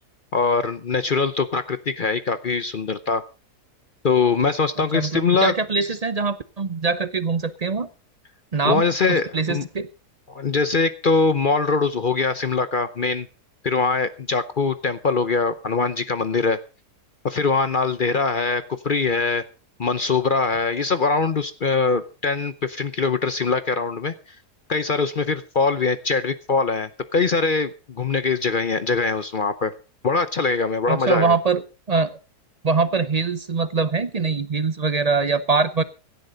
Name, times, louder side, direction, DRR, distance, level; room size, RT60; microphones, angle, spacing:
voice 1, 0.3-3.2 4.0-5.5 8.6-9.7 10.3-13.3 13.6-16.6 17.2-19.4 19.8-24.1 24.7-29.7 30.0-31.4, left 4 dB, 45° left, 12 dB, 0.7 m, -22 dB
voice 2, 4.9-7.9 8.5-9.9 30.9-31.6 31.9-32.2 32.6-35.8, right 4 dB, 45° right, 14 dB, 0.5 m, -23 dB
17.0 x 12.5 x 3.9 m, 0.32 s
omnidirectional pair, 1.7 m